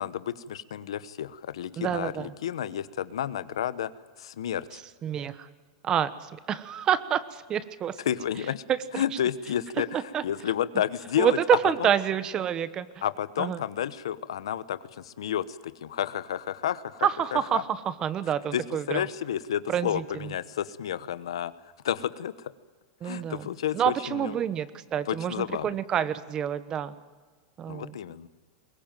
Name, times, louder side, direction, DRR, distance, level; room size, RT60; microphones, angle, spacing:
voice 1, 0.0-3.9 4.2-4.8 8.1-8.6 8.9-11.4 13.0-17.6 18.5-21.5 21.8-22.5 23.0-24.3 25.1-25.7 27.7-28.3, left 10 dB, 90° left, 15 dB, 1.1 m, -31 dB
voice 2, 1.8-2.3 5.0-5.5 5.8-8.0 8.7-9.0 10.1-10.2 11.2-12.9 13.4-13.6 17.0-19.0 19.7-20.3 23.0-23.5 23.7-26.9 27.6-28.0, right 9 dB, 25° right, 15 dB, 1.2 m, -28 dB
22.5 x 19.0 x 9.2 m, 1.4 s
supercardioid pair, 140°, 3 cm